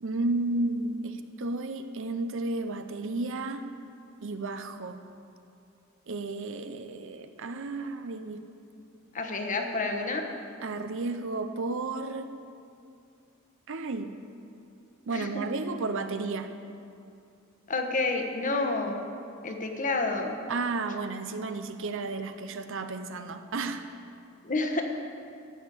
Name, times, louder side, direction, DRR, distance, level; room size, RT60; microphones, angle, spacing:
voice 1, 0.0-3.7 4.2-5.1 6.1-8.4 10.6-12.3 13.7-14.1 15.1-16.5 20.5-23.8, right 3 dB, 65° right, 9 dB, 0.7 m, -32 dB
voice 2, 9.1-10.3 15.1-15.3 17.7-19.0 19.4-20.4 24.4-24.8, left 3 dB, 40° left, 4 dB, 1.2 m, -29 dB
14.0 x 6.4 x 8.6 m, 2.5 s
head